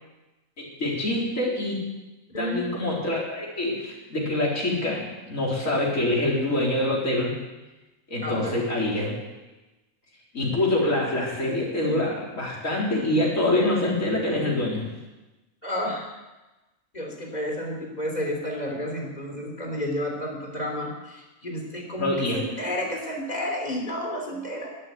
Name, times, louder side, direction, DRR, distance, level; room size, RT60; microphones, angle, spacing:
voice 1, 0.6-1.8 2.4-7.4 8.1-9.1 10.3-14.9 22.0-22.4, left 1 dB, 70° left, -3 dB, 4.3 m, -25 dB
voice 2, 2.3-2.8 8.2-8.6 15.6-16.2 16.9-24.7, left 1 dB, 30° left, 0 dB, 3.5 m, -31 dB
12.0 x 11.5 x 9.5 m, 1.1 s
omnidirectional pair, 1.4 m